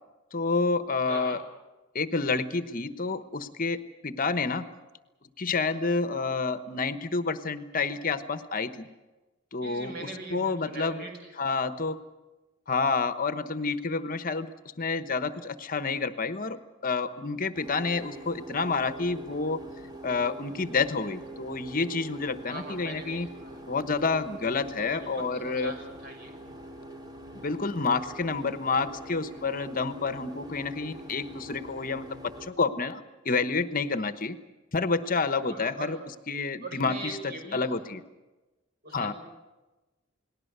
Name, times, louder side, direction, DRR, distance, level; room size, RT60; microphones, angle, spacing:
voice 1, 0.3-1.4 1.9-4.7 5.4-8.9 9.5-11.0 11.4-12.0 12.7-14.5 14.8-16.6 16.8-19.6 20.0-23.3 23.7-25.7 27.3-34.4 34.7-36.0 36.3-38.0 38.9-39.1, left 4 dB, 45° left, 11 dB, 1.1 m, -29 dB
voice 2, 1.1-1.4 9.6-11.1 22.5-23.6 25.2-26.3 35.3-36.0 36.6-37.9 38.8-39.1, right 2 dB, 50° right, 3 dB, 6.1 m, -41 dB
sound 1, 17.5-32.5, right 1 dB, 20° right, 2.6 m, -44 dB
29.0 x 19.5 x 6.8 m, 1.1 s
head